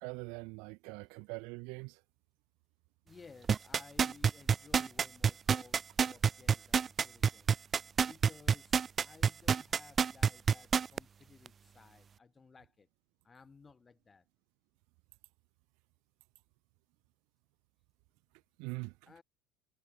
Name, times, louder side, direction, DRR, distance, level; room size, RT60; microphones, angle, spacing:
voice 1, 0.0-2.0 18.6-18.9, right 32 dB, 70° right, 0.7 m, -42 dB
voice 2, 3.0-7.6 8.1-12.9 13.2-14.2 19.0-19.2, left 5 dB, 20° left, 7.9 m, -58 dB
sound 1, 3.5-11.0 11.5-11.6, right 6 dB, 30° right, 0.3 m, -27 dB
supercardioid pair, 115°, 0 cm